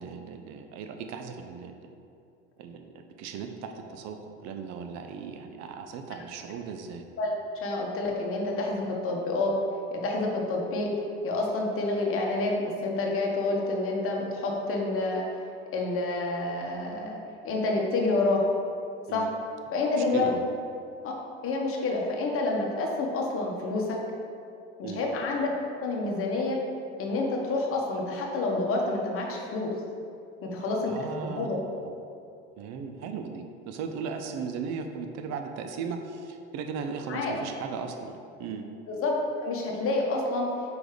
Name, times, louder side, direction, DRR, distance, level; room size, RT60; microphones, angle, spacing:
voice 1, 0.0-2.0 2.6-7.0 19.1-19.3 20.0-20.4 24.8-25.0 30.9-31.5 32.6-38.6, right 5 dB, 60° right, 5 dB, 0.7 m, -37 dB
voice 2, 7.6-9.5 9.9-10.9 11.2-15.2 15.7-17.2 17.4-18.5 19.1-19.2 19.7-20.3 21.0-21.1 21.4-24.0 24.8-25.5 25.8-26.6 27.0-29.7 30.4-30.9 31.2-31.6 37.1-37.3 38.9-40.5, left 2 dB, 45° left, -1 dB, 1.3 m, -28 dB
4.8 x 4.0 x 5.0 m, 2.6 s
supercardioid pair, 95°, 30 cm